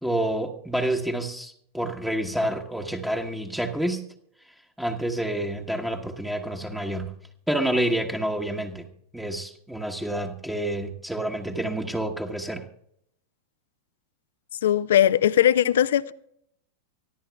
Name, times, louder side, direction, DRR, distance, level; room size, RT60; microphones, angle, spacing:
voice 1, 0.0-4.0 4.8-7.1 7.5-8.9 9.1-12.6, right 1 dB, 5° right, 1.2 m, -28 dB
voice 2, 14.6-16.1, left 11 dB, 60° left, 0.6 m, -19 dB
24.5 x 15.0 x 2.3 m
figure-of-eight pair, 90°, 0 cm